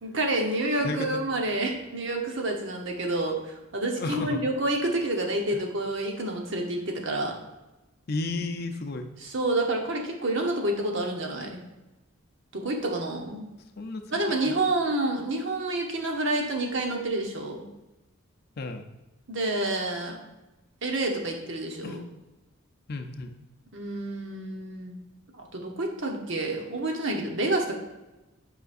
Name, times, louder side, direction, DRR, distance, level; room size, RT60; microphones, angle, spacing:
voice 1, 0.0-7.3 9.2-11.6 12.5-13.5 14.1-17.7 19.3-20.2 20.8-22.0 23.7-25.0 25.3-27.7, right 2 dB, 60° right, 2 dB, 1.0 m, -28 dB
voice 2, 4.0-4.4 5.5-5.6 8.1-9.1 13.8-14.6 18.6-18.9 21.8-22.0 22.9-23.3, left 3 dB, 45° left, 5 dB, 0.5 m, -33 dB
8.0 x 5.0 x 2.5 m, 1.0 s
head